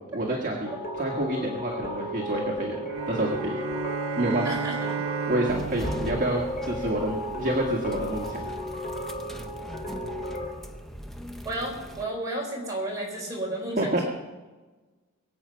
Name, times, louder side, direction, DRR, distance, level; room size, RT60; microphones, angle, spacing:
voice 1, 0.1-3.6 4.2-4.5 5.3-8.4 13.8-14.0, right 1 dB, 40° right, -1 dB, 1.6 m, -28 dB
sound 1, 0.6-10.5, equal, 45° left, 2.5 m, -34 dB
sound 2, 2.9-7.3, right 7 dB, 80° right, 0.5 m, -34 dB
voice 2, 4.4-4.8 6.8-6.9 11.4-14.0, right 1 dB, 15° right, -3 dB, 4.7 m, -32 dB
sound 3, 5.5-12.0, equal, ahead, 0.8 m, -39 dB
22.5 x 8.2 x 5.6 m, 1.3 s
head